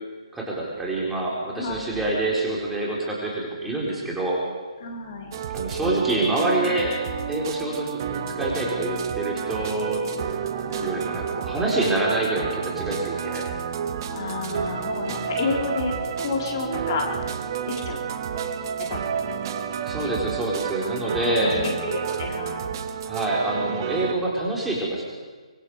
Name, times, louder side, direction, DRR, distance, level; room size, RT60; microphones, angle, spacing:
voice 1, 0.3-4.4 5.5-7.0 7.3-10.0 10.8-13.4 19.8-21.5 23.1-25.0, right 2 dB, 5° right, -4 dB, 4.4 m, -26 dB
voice 2, 1.5-2.1 4.8-5.3 10.7-11.0 14.1-17.3 17.8-18.0 18.4-18.5 18.9-19.3 20.0-20.1 21.4-22.7, left 3 dB, 40° left, 0 dB, 4.2 m, -30 dB
sound 1, 5.3-24.1, right 7 dB, 40° right, 1.5 m, -30 dB
24.5 x 24.0 x 4.9 m, 1.4 s
figure-of-eight pair, 140°, 3 cm